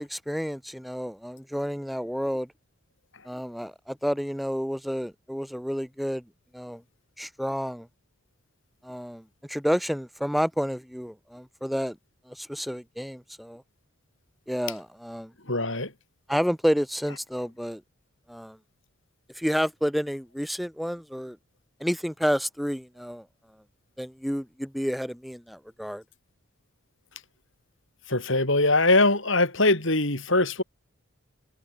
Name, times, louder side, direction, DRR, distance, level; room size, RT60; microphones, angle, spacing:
voice 1, 0.0-2.5 3.2-6.2 6.5-6.8 7.2-7.9 8.8-9.2 9.5-11.9 12.3-13.6 14.5-15.3 16.3-17.8 18.3-18.6 19.3-21.4 21.8-23.2 24.0-26.0, equal, ahead, 1.3 m, -30 dB
voice 2, 15.5-15.9 28.1-30.6, left 2 dB, 60° left, 5.9 m, -22 dB
head